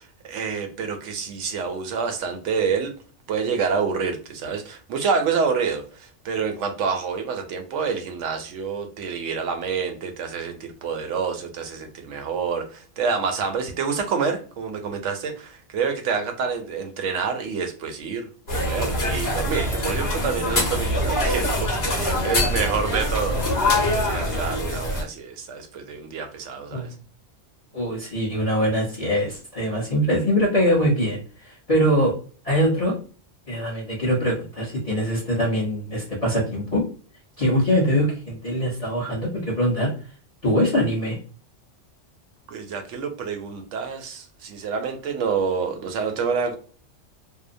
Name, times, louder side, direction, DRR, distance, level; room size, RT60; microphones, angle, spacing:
voice 1, 0.0-2.9 3.3-18.3 18.5-26.9 42.5-46.6, right 5 dB, 80° right, 0.9 m, -28 dB
sound 1, 18.5-25.0, left 1 dB, 55° left, 1.1 m, -24 dB
voice 2, 27.7-32.2 32.4-32.9 33.5-36.8 37.4-39.9 40.4-41.2, equal, 35° left, 0.9 m, -23 dB
2.7 x 2.0 x 2.5 m
omnidirectional pair, 1.3 m